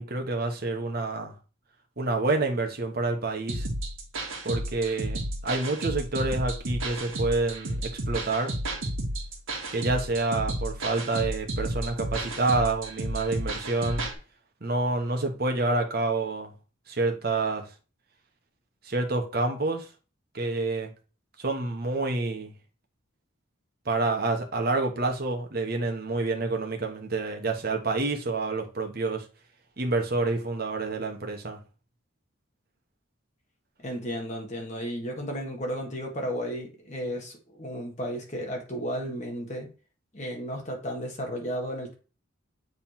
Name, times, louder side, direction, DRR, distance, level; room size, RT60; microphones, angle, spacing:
voice 1, 0.0-1.3 2.0-3.7 4.4-7.8 8.1-8.6 9.7-14.0 14.6-16.5 16.9-17.6 18.8-19.9 20.3-20.9 21.4-22.5 23.8-29.2 29.8-31.6, right 3 dB, 45° right, 1.1 m, -28 dB
sound 1, 3.5-14.1, right 1 dB, 70° right, 1.5 m, -32 dB
voice 2, 33.8-39.7 40.1-41.9, equal, 35° left, 1.6 m, -33 dB
7.3 x 3.4 x 4.4 m
head